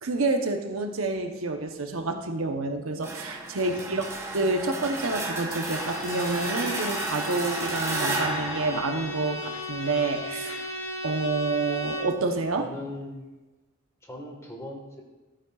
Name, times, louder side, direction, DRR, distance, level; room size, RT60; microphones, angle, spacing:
voice 1, 0.0-10.6 11.0-12.7, right 3 dB, 80° right, 5 dB, 0.9 m, -28 dB
sound 1, 3.0-9.7, right 2 dB, 15° right, 0.9 m, -33 dB
voice 2, 3.6-4.0 12.6-13.3 14.0-15.0, left 1 dB, 15° left, 0 dB, 1.5 m, -40 dB
Bowed string instrument, 5.5-12.2, equal, 80° left, 1.2 m, -36 dB
14.0 x 8.7 x 2.4 m, 1.2 s
head